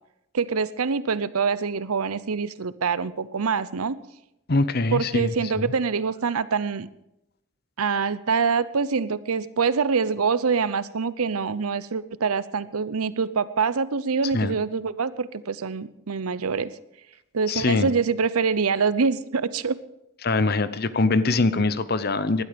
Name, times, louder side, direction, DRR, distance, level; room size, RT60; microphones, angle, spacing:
voice 1, 0.3-3.9 4.9-6.9 7.8-16.7 17.3-19.8, right 5 dB, 90° right, 16 dB, 0.7 m, -25 dB
voice 2, 4.5-5.7 14.3-14.5 17.5-17.9 20.2-22.4, left 3 dB, 45° left, 14 dB, 0.7 m, -23 dB
19.5 x 12.0 x 5.2 m, 0.84 s
head